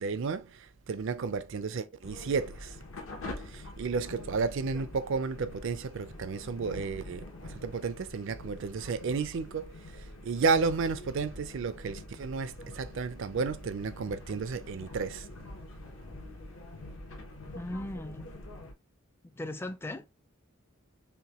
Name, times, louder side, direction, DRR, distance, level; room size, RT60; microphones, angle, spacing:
voice 1, 0.0-2.8 3.4-15.3, right 4 dB, 60° right, 0.4 m, -32 dB
sound 1, 2.0-18.7, left 1 dB, 70° left, 0.9 m, -45 dB
voice 2, 17.6-18.3 19.2-20.0, left 1 dB, 10° left, 0.3 m, -38 dB
5.6 x 2.2 x 2.9 m
head